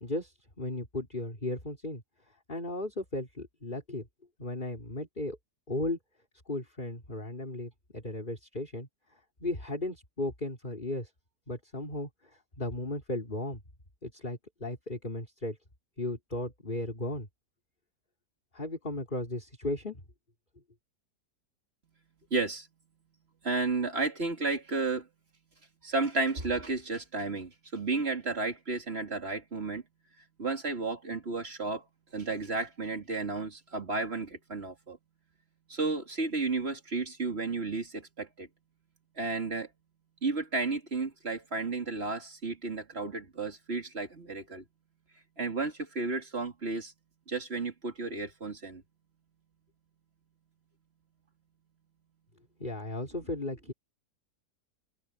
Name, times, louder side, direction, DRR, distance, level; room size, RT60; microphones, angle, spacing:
voice 1, 0.0-4.1 4.4-5.4 5.7-6.0 6.5-11.1 11.5-13.6 14.0-15.6 16.0-17.3 18.5-20.0 52.6-53.7, left 2 dB, 30° left, 4.0 m, -36 dB
voice 2, 22.3-22.6 23.4-25.0 25.8-29.8 30.4-31.8 32.1-35.0 35.7-38.3 39.2-39.7 40.2-44.6 45.4-46.9 47.3-48.8, right 3 dB, 35° right, 3.1 m, -32 dB
omnidirectional pair, 1.8 m